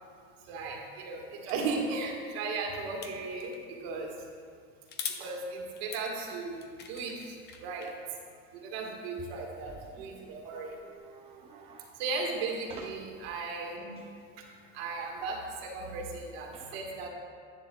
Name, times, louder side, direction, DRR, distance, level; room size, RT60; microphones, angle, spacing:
voice 1, 0.4-4.3 5.2-8.0 8.5-10.8 12.0-14.4 14.7-17.1, right 3 dB, 75° right, 0 dB, 1.6 m, -36 dB
sound 1, 1.5-1.6 3.0-3.6 4.9-5.2 5.8-7.9, left 7 dB, 35° left, 0.7 m, -42 dB
voice 2, 9.9-10.3 10.6-12.0 12.7-12.9 16.5-16.8, right 6 dB, 20° right, 2 dB, 0.4 m, -50 dB
10.0 x 9.8 x 2.3 m, 2.2 s
cardioid pair, 145°, 31 cm